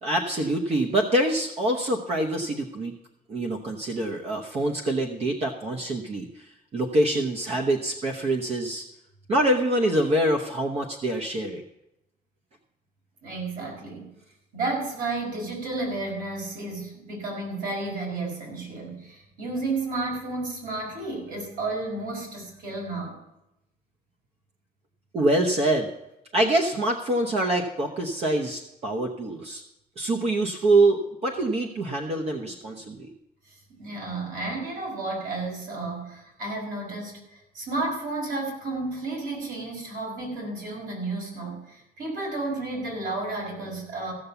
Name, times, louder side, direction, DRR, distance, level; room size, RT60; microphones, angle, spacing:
voice 1, 0.0-2.9 3.3-6.4 6.7-8.8 9.3-11.6 25.1-25.9 26.3-29.6 30.0-33.1, right 1 dB, 40° right, 1 dB, 1.0 m, -25 dB
voice 2, 13.2-14.1 14.5-23.2 33.8-44.1, right 2 dB, 65° right, -1 dB, 5.5 m, -32 dB
15.5 x 6.9 x 7.0 m, 0.87 s
cardioid pair, 160°, 16 cm